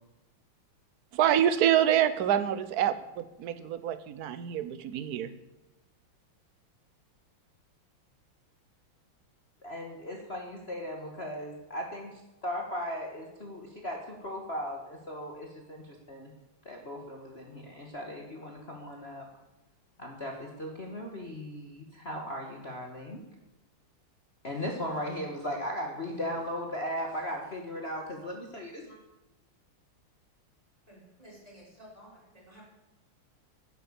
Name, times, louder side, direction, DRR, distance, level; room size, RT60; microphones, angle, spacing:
voice 1, 1.1-5.3, right 10 dB, 60° right, 13 dB, 1.1 m, -26 dB
voice 2, 9.6-16.3 16.6-19.3 20.0-23.2 24.4-29.0, equal, 30° left, 0 dB, 1.5 m, -37 dB
voice 3, 30.9-32.7, equal, 15° right, -4 dB, 5.1 m, -53 dB
11.5 x 10.0 x 7.0 m, 1.0 s
omnidirectional pair, 2.4 m